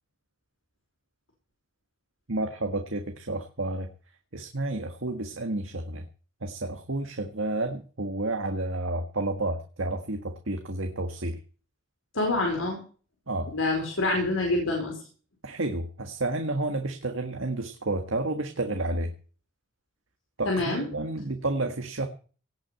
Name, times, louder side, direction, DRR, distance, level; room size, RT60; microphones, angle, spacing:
voice 1, 2.3-3.9 4.3-6.0 6.4-11.4 13.3-13.5 15.4-19.1 20.4-22.1, right 2 dB, 75° right, 5 dB, 1.6 m, -30 dB
voice 2, 12.1-12.8 13.5-15.0 20.4-20.8, left 2 dB, 80° left, 0 dB, 4.8 m, -26 dB
18.0 x 6.1 x 8.8 m, 0.39 s
head